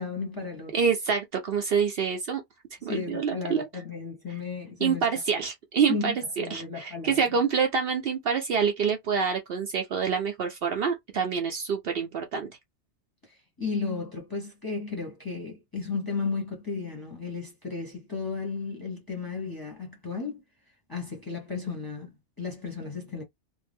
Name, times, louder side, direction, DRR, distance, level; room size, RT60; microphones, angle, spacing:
voice 1, 0.0-0.7 2.8-5.1 5.9-7.2 13.2-20.4 20.9-23.2, left 4 dB, 20° left, 0.8 m, -34 dB
voice 2, 0.7-2.4 2.8-3.7 4.8-12.5, right 6 dB, 65° right, 0.7 m, -27 dB
2.5 x 2.0 x 3.3 m
omnidirectional pair, 1.2 m